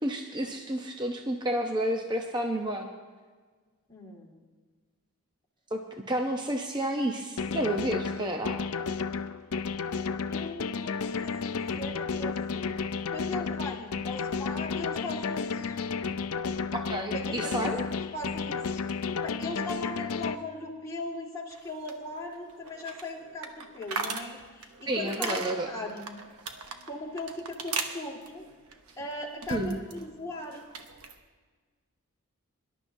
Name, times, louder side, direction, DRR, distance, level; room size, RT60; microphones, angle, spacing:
voice 1, 0.0-2.9 5.7-8.6 16.7-17.8 24.9-25.7 29.5-29.8, right 1 dB, 20° right, 3 dB, 0.7 m, -30 dB
voice 2, 3.9-4.4 10.3-12.7 13.1-15.8 17.1-25.4 25.6-26.1 26.9-28.4 29.0-30.7, left 2 dB, 15° left, -3 dB, 2.0 m, -39 dB
sound 1, 7.4-20.4, left 5 dB, 75° left, 0.5 m, -32 dB
sound 2, 21.5-30.0 30.3-31.2, right 5 dB, 80° right, 1.1 m, -39 dB
24.0 x 11.5 x 2.7 m, 1.5 s
head